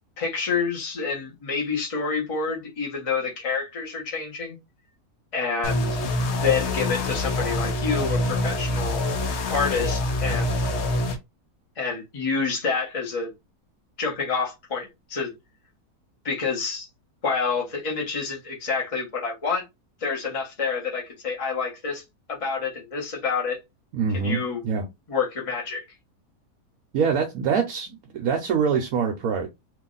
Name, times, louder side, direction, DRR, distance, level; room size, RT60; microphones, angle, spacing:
voice 1, 0.2-4.6 5.3-6.0 6.3-9.0 9.5-10.7 11.8-13.3 14.0-15.3 16.2-16.9 17.2-19.6 20.0-22.0 22.3-23.6 24.1-24.6 25.1-25.8, left 5 dB, 25° left, 1.0 m, -28 dB
sound 1, 5.6-11.2, left 2 dB, 55° left, 0.9 m, -25 dB
voice 2, 23.9-24.9 26.9-29.5, right 6 dB, 70° right, 1.1 m, -24 dB
3.1 x 2.6 x 3.8 m
omnidirectional pair, 1.7 m